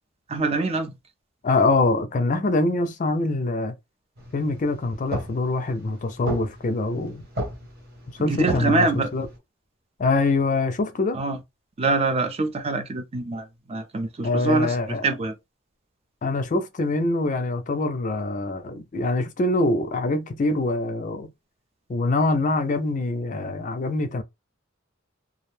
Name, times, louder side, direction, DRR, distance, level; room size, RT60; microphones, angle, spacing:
voice 1, 0.3-0.9 8.2-9.1 11.1-11.4 11.8-15.3, right 3 dB, 30° right, 0.4 m, -25 dB
voice 2, 1.4-3.7 4.3-7.2 8.2-9.3 10.0-11.2 14.2-15.0 16.2-21.3 21.9-24.2, left 2 dB, 40° left, 0.4 m, -24 dB
sound 1, 4.2-9.4, right 1 dB, 55° right, 1.0 m, -35 dB
2.4 x 2.1 x 3.1 m
head